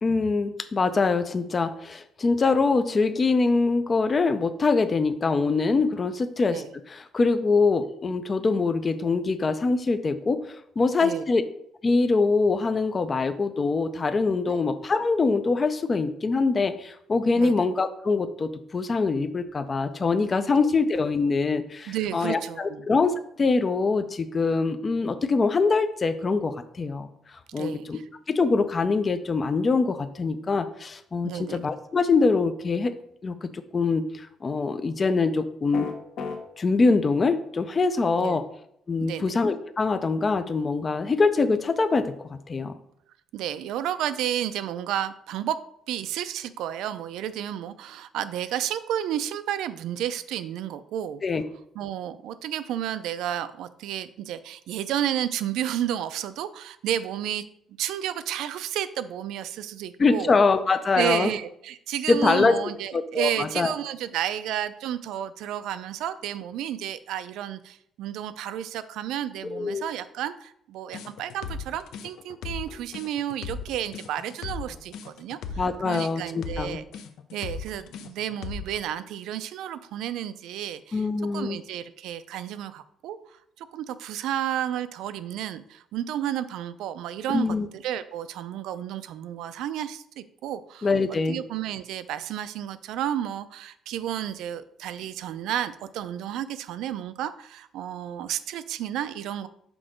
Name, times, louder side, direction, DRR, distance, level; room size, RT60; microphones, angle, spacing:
voice 1, 0.0-11.4 11.8-27.1 27.5-28.0 28.3-33.0 33.2-35.9 36.6-38.4 38.9-42.7 51.2-51.4 60.0-61.3 62.1-62.6 62.9-63.7 69.4-69.8 75.6-76.8 80.9-81.6 87.3-87.7 90.8-91.4, left 4 dB, 25° left, 10 dB, 0.4 m, -24 dB
voice 2, 21.9-22.8 27.6-28.0 31.2-31.6 38.2-38.4 39.0-39.2 43.3-51.2 51.8-57.4 57.8-60.3 61.0-75.4 75.8-76.8 77.3-81.1 81.3-83.2 83.6-87.5 87.7-90.9 91.3-99.5, right 11 dB, 85° right, 13 dB, 0.4 m, -31 dB
sound 1, 35.7-36.4, left 5 dB, 55° left, 1.0 m, -32 dB
sound 2, 70.9-78.8, left 5 dB, 75° left, 0.6 m, -37 dB
6.1 x 3.7 x 5.1 m, 0.71 s
cardioid pair, 170°, 0 cm